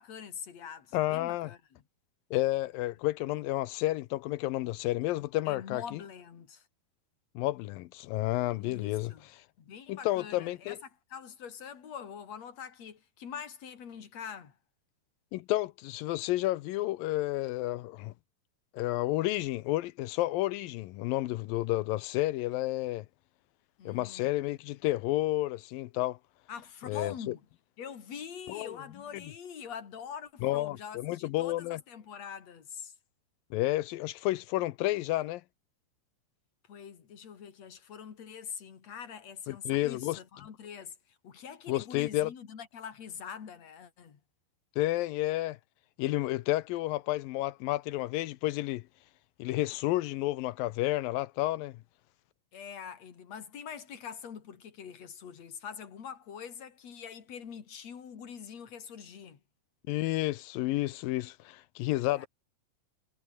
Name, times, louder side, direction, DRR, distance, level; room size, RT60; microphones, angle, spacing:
voice 1, 0.0-1.8 5.5-6.7 8.6-9.3 9.6-10.8 11.1-14.6 23.8-24.3 26.5-27.4 27.8-32.9 36.7-44.2 52.5-59.4 62.0-62.3, left 7 dB, 50° left, 3.6 m, -44 dB
voice 2, 0.9-1.5 2.3-6.0 7.4-9.1 9.9-10.8 15.3-18.1 18.7-23.1 23.9-26.2 26.9-27.3 28.5-28.8 29.1-29.2 30.4-31.8 33.5-35.4 39.5-40.2 41.7-42.3 44.8-45.6 46.0-48.8 49.4-51.8 59.9-62.3, left 17 dB, 80° left, 2.4 m, -31 dB
omnidirectional pair, 4.2 m